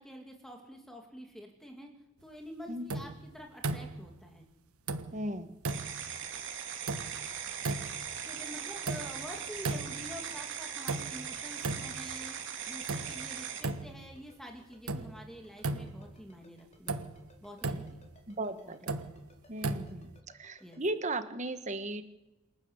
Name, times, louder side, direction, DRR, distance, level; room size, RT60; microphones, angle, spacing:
voice 1, 0.0-1.9 2.2-4.5 8.3-12.4 12.7-17.0 17.4-17.9 18.6-18.9 20.6-20.8, equal, ahead, 2 dB, 2.5 m, -47 dB
sound 1, 2.9-3.3 3.6-4.1 4.9-5.3 5.6-6.1 6.9-7.3 7.6-8.1 8.9-9.3 9.6-10.2 10.9-11.3 11.6-12.1 12.9-13.3 13.6-14.1 14.9-15.2 15.6-16.2 16.9-17.2 17.6-18.1 18.9-19.2 19.6-20.1, right 3 dB, 80° right, 1.3 m, -36 dB
voice 2, 5.1-5.6 18.3-19.0 19.5-22.0, right 2 dB, 35° right, 10 dB, 1.5 m, -36 dB
sound 2, 5.7-13.6, right 8 dB, 55° right, 3.4 m, -40 dB
Ringtone, 14.0-20.8, left 1 dB, 30° left, 4.9 m, -61 dB
27.5 x 12.0 x 8.1 m, 1.0 s
head